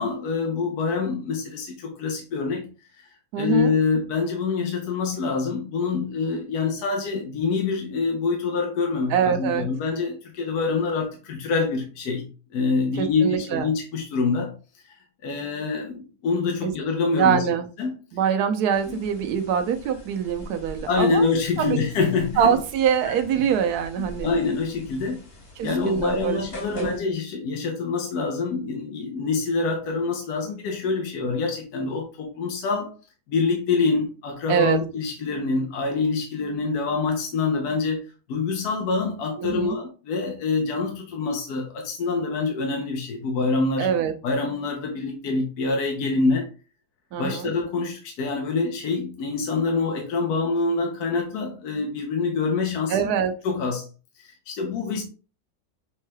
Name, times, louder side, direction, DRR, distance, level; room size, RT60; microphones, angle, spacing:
voice 1, 0.0-2.7 3.4-12.2 12.5-14.5 15.2-17.5 17.8-17.9 20.5-20.6 20.9-22.6 24.0-25.2 25.6-33.0 33.3-38.0 38.3-43.9 44.2-46.5 47.2-53.1 53.4-53.9 54.2-55.0, left 4 dB, 80° left, 1.3 m, -25 dB
voice 2, 3.3-3.7 9.1-9.7 13.0-13.7 16.6-16.7 17.1-17.7 18.1-21.3 21.6-21.8 22.4-24.4 25.6-26.4 26.7-27.0 34.5-34.8 39.4-39.8 43.8-44.1 47.1-47.5 52.9-53.3, right 8 dB, 85° right, 1.1 m, -24 dB
sound 1, 18.7-27.0, left 1 dB, 40° left, 1.4 m, -42 dB
6.3 x 3.1 x 2.2 m
omnidirectional pair, 1.6 m